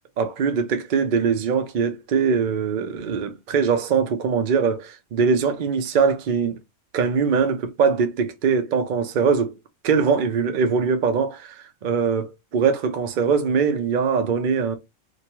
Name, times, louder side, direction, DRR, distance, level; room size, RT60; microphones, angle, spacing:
voice 1, 0.2-6.6 6.9-9.5 9.8-14.8, right 5 dB, 55° right, 0.6 m, -22 dB
2.8 x 2.2 x 2.9 m
omnidirectional pair, 1.3 m